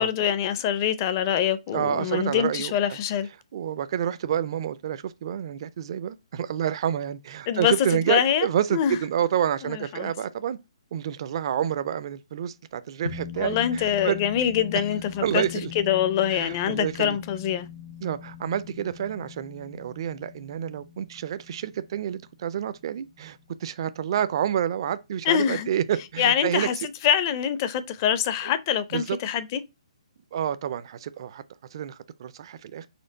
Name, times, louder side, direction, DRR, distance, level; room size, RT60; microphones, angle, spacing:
voice 1, 0.0-3.3 7.5-9.0 9.6-10.1 13.4-15.4 15.8-17.7 25.2-25.7 26.2-26.7 27.0-29.6, left 9 dB, 30° left, 0.5 m, -24 dB
voice 2, 1.7-3.0 3.5-10.6 10.9-14.2 15.2-15.7 16.3-17.2 18.0-26.9 28.9-29.2 30.3-31.4 31.7-32.9, right 9 dB, 45° right, 0.4 m, -28 dB
sound 1, 13.0-23.7, left 7 dB, 70° left, 1.4 m, -42 dB
4.3 x 3.0 x 3.8 m
hypercardioid pair, 155°, 4 cm